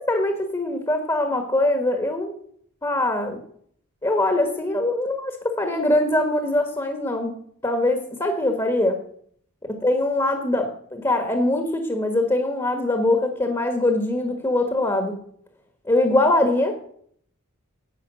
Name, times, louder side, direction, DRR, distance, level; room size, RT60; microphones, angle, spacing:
voice 1, 0.0-2.3 2.8-3.4 4.0-7.3 7.6-9.0 9.6-15.2 15.8-16.8, left 1 dB, 15° left, 5 dB, 1.5 m, -22 dB
11.0 x 8.9 x 6.3 m, 0.63 s
head